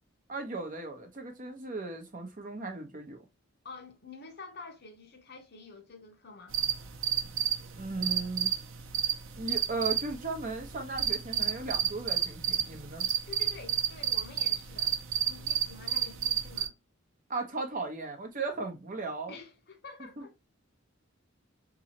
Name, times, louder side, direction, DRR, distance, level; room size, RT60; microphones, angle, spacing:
voice 1, 0.3-3.2 7.8-8.5 9.4-13.1 17.3-19.4 20.2-20.3, right 3 dB, 40° right, 0.9 m, -36 dB
voice 2, 3.6-6.6 13.3-15.0 15.3-16.7 19.3-20.4, left 4 dB, 55° left, 1.0 m, -48 dB
sound 1, 6.5-16.7, right 9 dB, 80° right, 0.6 m, -31 dB
3.8 x 3.0 x 2.8 m
head